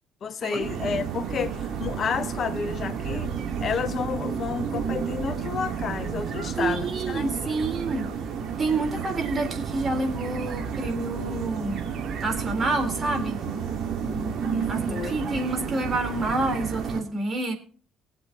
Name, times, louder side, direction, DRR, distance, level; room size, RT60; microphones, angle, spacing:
voice 1, 0.2-3.3 3.6-7.6 14.5-15.2, left 6 dB, 45° left, 0.7 m, -31 dB
sound 1, 0.6-17.0, right 7 dB, 50° right, 2.9 m, -31 dB
voice 2, 6.6-8.1 8.6-11.8 12.2-13.4 14.7-17.5, right 2 dB, 30° right, 3.6 m, -28 dB
23.5 x 7.8 x 2.8 m
figure-of-eight pair, 50°, 0 cm